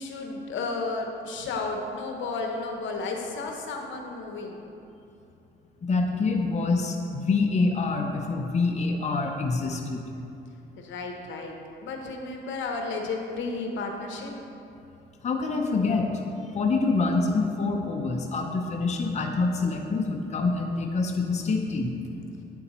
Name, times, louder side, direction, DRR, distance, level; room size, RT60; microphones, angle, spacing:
voice 1, 0.0-4.7 10.8-11.5 11.8-14.3, left 3 dB, 75° left, 2 dB, 0.9 m, -33 dB
voice 2, 5.8-10.0 15.2-16.2 16.5-21.9, left 3 dB, 35° left, 2 dB, 0.7 m, -26 dB
8.9 x 7.0 x 3.1 m, 2.7 s
cardioid pair, 90°, 20 cm